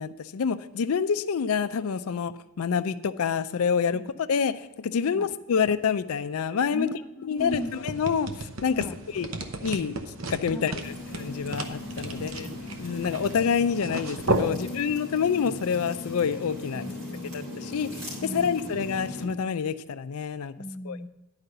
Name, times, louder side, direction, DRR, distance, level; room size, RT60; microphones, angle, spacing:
voice 1, 0.0-6.9 7.2-8.8 9.1-9.3 9.6-10.0 10.3-12.5 12.8-16.8 17.3-20.5 20.9-21.0, left 6 dB, 80° left, 12 dB, 0.4 m, -27 dB
voice 2, 6.7-7.8 8.7-9.0 10.5-10.8 12.1-12.4 14.4-14.7 16.7-17.4 18.2-18.6 20.6-21.1, left 1 dB, 10° left, 4 dB, 0.4 m, -38 dB
sound 1, 7.4-14.5, right 2 dB, 65° right, 0.9 m, -34 dB
sound 2, 10.8-19.3, left 2 dB, 90° right, 3.4 m, -38 dB
10.5 x 4.9 x 6.6 m, 0.98 s
head